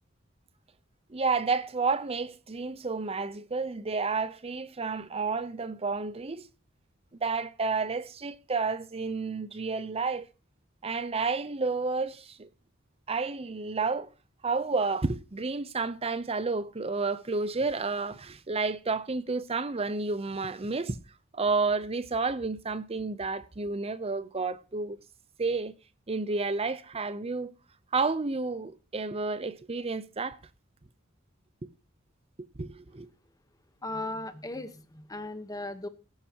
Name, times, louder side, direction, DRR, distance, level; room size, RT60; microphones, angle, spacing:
voice 1, 1.1-6.5 7.2-10.3 10.8-12.5 13.1-14.1 14.4-21.0 21.3-25.0 25.4-25.7 26.1-27.5 27.9-30.4 32.4-33.1, right 4 dB, 30° right, 0.7 m, -30 dB
voice 2, 33.8-35.9, left 2 dB, 20° left, 1.0 m, -37 dB
17.0 x 10.0 x 2.9 m
head